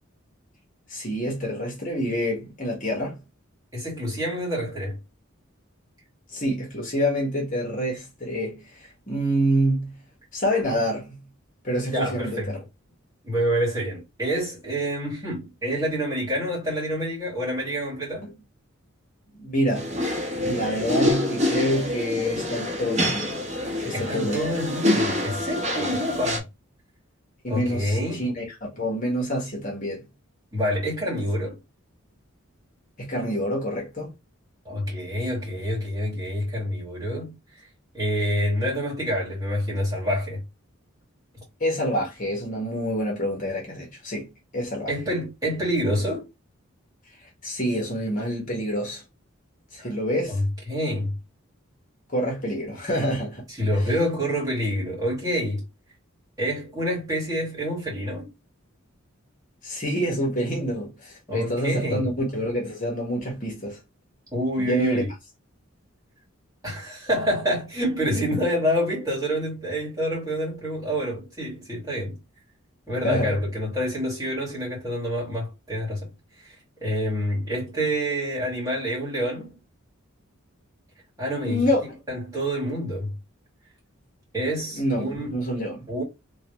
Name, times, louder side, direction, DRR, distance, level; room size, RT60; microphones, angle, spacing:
voice 1, 0.9-3.2 6.3-9.9 10.3-11.2 11.6-12.6 18.2-18.3 19.3-19.9 20.4-23.3 23.8-24.5 27.4-30.0 33.0-34.1 41.6-44.9 47.4-49.0 49.7-50.4 52.1-53.4 59.6-63.8 64.6-65.0 73.0-73.4 81.5-81.9 84.7-85.8, equal, 40° left, 1.5 m, -27 dB
voice 2, 3.7-5.0 11.9-12.6 13.2-18.3 23.9-26.5 27.5-28.3 30.5-31.6 34.7-37.3 37.9-40.4 44.9-46.2 49.8-49.9 50.3-51.1 53.6-55.6 56.4-58.3 61.3-62.1 64.3-65.1 66.6-72.2 72.9-76.1 76.8-79.6 81.2-81.7 82.1-83.1 84.3-85.3 85.9-86.0, equal, 15° right, 2.1 m, -27 dB
sound 1, 19.8-26.4, left 1 dB, 30° right, 1.2 m, -26 dB
3.1 x 3.0 x 3.1 m
head